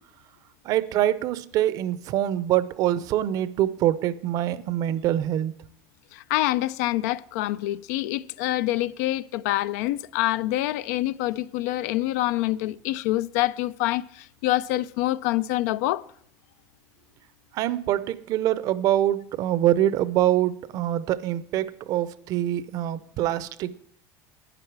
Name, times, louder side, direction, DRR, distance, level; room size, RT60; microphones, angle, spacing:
voice 1, 0.7-5.5 17.6-23.8, right 12 dB, 45° right, 0.6 m, -24 dB
voice 2, 6.1-16.1, left 16 dB, 80° left, 0.5 m, -26 dB
12.0 x 9.5 x 4.6 m
cardioid pair, 160°, 9 cm